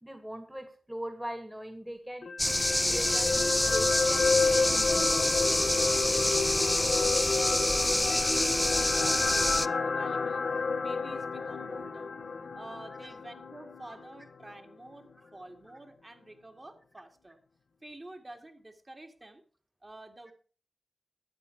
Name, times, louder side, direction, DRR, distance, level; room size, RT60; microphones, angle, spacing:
voice 1, 0.0-2.3 2.9-5.3 13.0-13.1 13.9-14.0, equal, 10° right, 8 dB, 1.8 m, -41 dB
sound 1, 2.2-14.5 14.9-15.0, left 4 dB, 75° left, 1.0 m, -30 dB
sound 2, 2.4-9.7, left 1 dB, 15° left, 0.5 m, -27 dB
voice 2, 7.3-12.1 12.5-17.4 17.8-19.4 19.8-20.3, right 2 dB, 35° right, 4 dB, 2.4 m, -49 dB
12.0 x 8.8 x 4.7 m, 0.38 s
cardioid pair, 45°, 0 cm